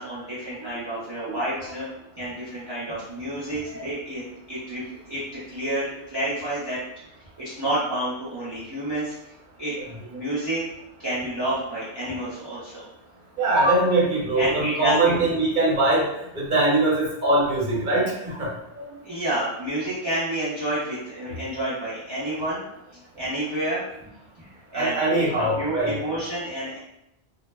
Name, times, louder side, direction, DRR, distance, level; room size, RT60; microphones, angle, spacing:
voice 1, 0.0-1.9 2.1-6.8 7.4-9.1 9.6-9.7 10.1-10.6 11.0-12.8 14.4-15.3 19.0-22.6 23.1-23.8 24.4-26.8, right 1 dB, 30° right, -10 dB, 0.6 m, -29 dB
voice 2, 13.4-16.1 16.3-18.8 24.7-25.9, right 2 dB, 50° right, -5 dB, 0.9 m, -22 dB
2.2 x 2.0 x 3.3 m, 0.83 s
omnidirectional pair, 1.0 m